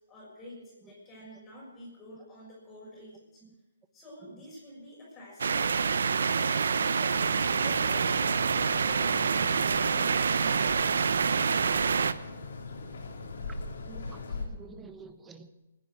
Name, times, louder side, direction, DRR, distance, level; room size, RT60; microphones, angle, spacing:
voice 1, 0.1-3.4 3.9-6.0 6.2-9.5 9.8-10.6, left 1 dB, 15° left, -5 dB, 6.3 m, -47 dB
sound 1, 5.4-12.1, right 5 dB, 70° right, 0.7 m, -26 dB
sound 2, 7.1-14.5, left 3 dB, 65° left, 3.5 m, -41 dB
voice 2, 13.9-15.5, right 5 dB, 10° right, 9 dB, 1.2 m, -49 dB
19.0 x 10.5 x 6.4 m, 1.1 s
hypercardioid pair, 145°, 0 cm